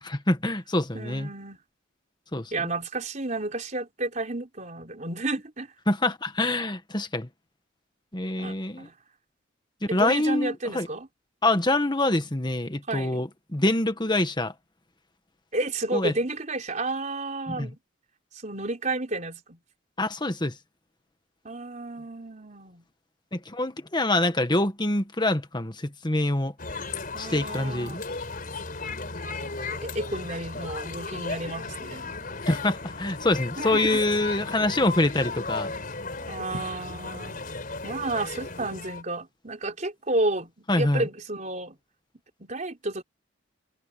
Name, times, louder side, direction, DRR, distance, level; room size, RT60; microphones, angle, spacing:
voice 1, 0.0-1.3 2.3-2.5 5.9-7.3 8.1-8.9 9.8-10.9 11.4-14.5 15.9-16.1 17.5-17.7 20.0-20.6 23.3-26.5 27.2-28.0 32.4-35.7 40.7-41.1, left 2 dB, 25° left, 1.5 m, -25 dB
voice 2, 0.9-1.6 2.5-5.7 8.4-8.9 9.9-11.1 12.9-13.2 15.5-17.8 18.4-19.6 21.4-22.8 27.1-28.0 29.4-32.3 33.6-33.8 36.2-37.4 37.8-41.8 42.4-43.0, right 2 dB, 40° right, 4.4 m, -32 dB
sound 1, 26.6-39.0, left 3 dB, 45° left, 4.8 m, -35 dB
head